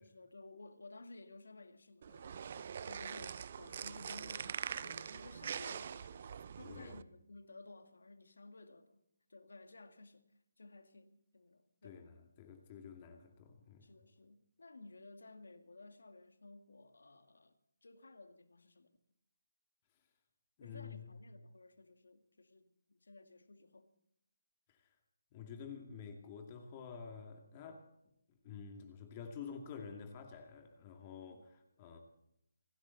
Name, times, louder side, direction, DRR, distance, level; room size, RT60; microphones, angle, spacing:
voice 1, 0.0-6.3 6.5-9.0 9.3-10.3 10.6-12.2 13.8-17.6 17.8-19.0 20.6-23.9 31.3-31.4, left 2 dB, 80° left, 2.1 m, -56 dB
sound 1, 2.0-7.0, right 7 dB, 45° right, 0.6 m, -44 dB
voice 2, 6.6-7.0 11.8-13.9 20.6-21.1 24.7-24.9 25.3-27.9 28.4-32.0, left 6 dB, 25° left, 2.4 m, -49 dB
27.5 x 12.5 x 4.1 m
figure-of-eight pair, 160°, 0 cm